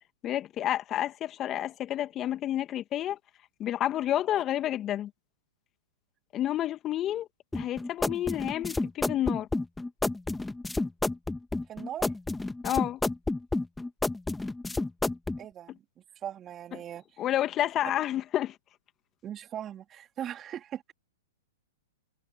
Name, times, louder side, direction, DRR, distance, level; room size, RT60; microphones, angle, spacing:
voice 1, 0.2-3.2 3.6-5.1 6.3-7.3 7.5-9.5 12.6-13.0 17.2-18.6, left 12 dB, 30° left, 1.9 m, -30 dB
sound 1, 7.5-15.4, left 2 dB, 5° left, 1.7 m, -30 dB
voice 2, 11.7-12.1 15.4-15.8 16.2-17.2 17.8-17.9 19.2-20.9, right 10 dB, 25° right, 2.8 m, -39 dB
hypercardioid pair, 115°, 0 cm